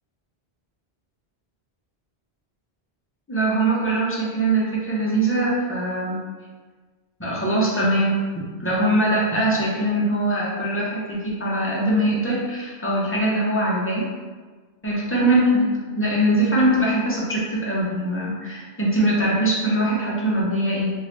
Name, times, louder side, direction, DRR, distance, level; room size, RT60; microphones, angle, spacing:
voice 1, 3.3-6.2 7.2-8.3 8.6-14.0 14.8-15.7 16.0-20.9, right 1 dB, 15° left, -6 dB, 0.6 m, -22 dB
3.0 x 2.7 x 3.1 m, 1.4 s
omnidirectional pair, 1.1 m